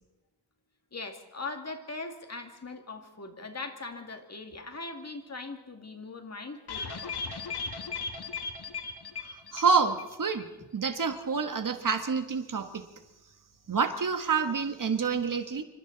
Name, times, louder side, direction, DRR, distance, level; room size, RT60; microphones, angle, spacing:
voice 1, 0.9-7.2, left 3 dB, 40° left, 5 dB, 2.3 m, -40 dB
sound 1, 6.7-10.1 10.4-10.5 10.8-10.9, left 4 dB, 70° left, 2.1 m, -37 dB
voice 2, 9.3-12.9 13.7-15.6, right 5 dB, 50° right, 7 dB, 1.5 m, -28 dB
27.0 x 25.5 x 4.0 m, 1.1 s
wide cardioid pair, 120°, 40 cm